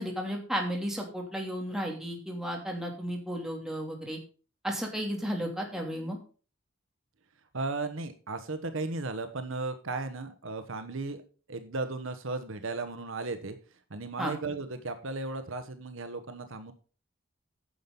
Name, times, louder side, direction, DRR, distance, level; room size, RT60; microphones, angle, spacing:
voice 1, 0.0-4.2 4.6-6.2 14.2-14.3, equal, ahead, 0 dB, 2.8 m, -33 dB
voice 2, 7.5-11.2 11.5-13.6 13.9-16.7, right 3 dB, 65° right, 10 dB, 1.1 m, -35 dB
10.0 x 7.0 x 5.4 m, 0.37 s
head